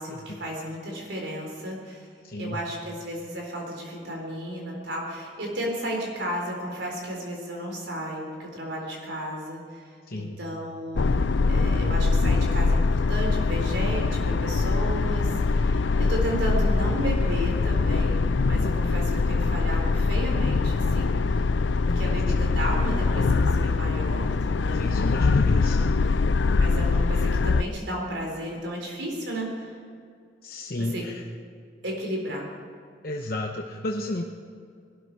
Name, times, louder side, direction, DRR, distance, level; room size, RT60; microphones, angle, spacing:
voice 1, 0.0-2.1 2.3-21.2 21.8-25.0 25.5-25.8 26.5-29.8 30.8-31.1 31.8-32.5, equal, 70° right, -1 dB, 4.1 m, -33 dB
voice 2, 2.2-2.6 10.1-10.4 18.6-18.9 21.9-22.2 24.7-25.8 30.4-31.2 33.0-34.2, left 2 dB, 50° left, 1 dB, 0.9 m, -32 dB
sound 1, 11.0-27.6, left 3 dB, 75° left, 0.5 m, -23 dB
21.0 x 12.5 x 4.8 m, 2.3 s
head